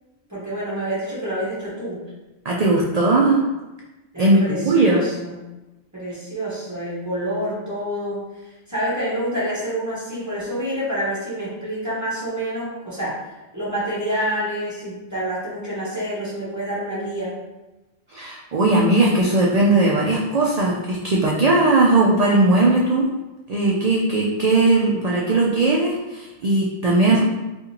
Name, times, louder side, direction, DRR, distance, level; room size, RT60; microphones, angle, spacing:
voice 1, 0.3-2.0 4.1-5.4 5.9-8.3 8.7-13.2 13.5-17.3, equal, 15° right, -9 dB, 1.2 m, -27 dB
voice 2, 2.4-3.4 4.2-5.0 18.1-23.1 23.5-27.2, right 2 dB, 75° right, -3 dB, 0.3 m, -18 dB
3.7 x 2.5 x 2.8 m, 1.1 s
omnidirectional pair, 1.2 m